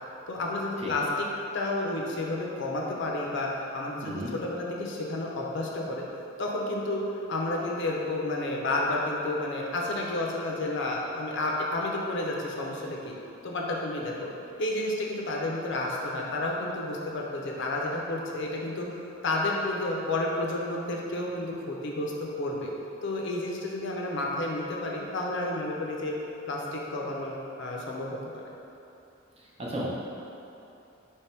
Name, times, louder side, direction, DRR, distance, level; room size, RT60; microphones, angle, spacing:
voice 1, 0.3-1.3 1.5-6.0 6.4-7.0 7.3-13.1 13.4-14.3 14.6-22.7 23.0-26.2 26.5-28.4, left 2 dB, 65° left, -2 dB, 0.5 m, -31 dB
voice 2, 4.0-4.3 29.4-29.9, equal, 30° right, -5 dB, 0.7 m, -35 dB
3.4 x 3.1 x 4.4 m, 2.8 s
head